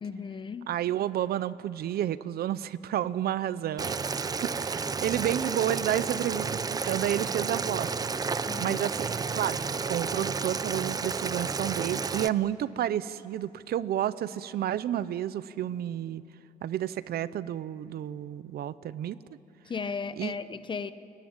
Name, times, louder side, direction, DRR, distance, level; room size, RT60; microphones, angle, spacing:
voice 1, 0.0-0.7 8.5-8.8 19.7-20.9, left 5 dB, 30° left, 13 dB, 0.8 m, -35 dB
voice 2, 0.7-4.0 4.4-8.2 8.6-16.2 16.6-19.2 20.2-20.4, right 11 dB, 75° right, 16 dB, 0.7 m, -31 dB
Boiling, 3.8-12.3, right 5 dB, 25° right, 0.5 m, -31 dB
29.5 x 21.5 x 8.9 m, 2.8 s
wide cardioid pair, 170°, 16 cm